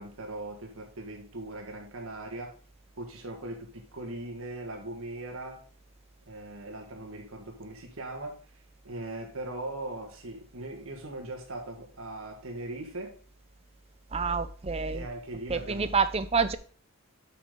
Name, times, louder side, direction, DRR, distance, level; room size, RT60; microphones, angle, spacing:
voice 1, 0.0-2.5 3.0-5.6 6.3-8.5 8.8-13.2 14.9-15.9, right 2 dB, 70° right, 2 dB, 1.7 m, -39 dB
voice 2, 14.1-15.1 15.5-16.6, right 5 dB, 25° right, 12 dB, 0.6 m, -27 dB
8.6 x 6.1 x 3.7 m, 0.42 s
head